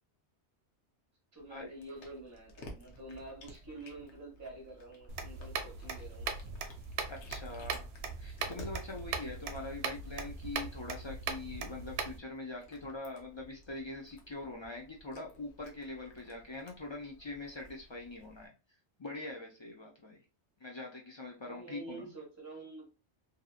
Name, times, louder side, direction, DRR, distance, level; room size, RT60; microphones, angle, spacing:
voice 1, 1.3-6.4 21.5-22.9, right 2 dB, 15° right, 1.1 m, -48 dB
Cat, 1.4-18.5, left 1 dB, 80° left, 1.0 m, -56 dB
sound 1, 5.1-12.2, right 5 dB, 70° right, 0.8 m, -39 dB
voice 2, 7.1-7.9 8.2-18.5 19.0-20.2 20.6-22.1, left 2 dB, 45° left, 0.4 m, -43 dB
2.7 x 2.6 x 2.3 m
omnidirectional pair, 1.2 m